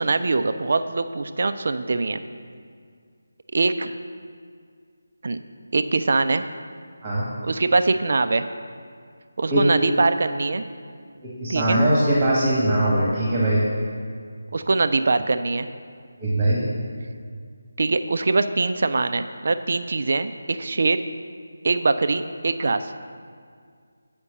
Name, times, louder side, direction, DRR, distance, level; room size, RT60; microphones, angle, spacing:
voice 1, 0.0-2.2 3.5-3.9 5.2-5.4 5.7-6.4 7.4-8.4 9.4-10.6 11.5-11.8 14.5-15.7 17.8-21.0 21.6-22.9, right 3 dB, 50° right, 10 dB, 0.4 m, -22 dB
voice 2, 11.2-13.6 16.2-16.6, right 1 dB, 20° right, -5 dB, 1.4 m, -21 dB
8.3 x 5.1 x 6.6 m, 2.1 s
figure-of-eight pair, 155°, 0 cm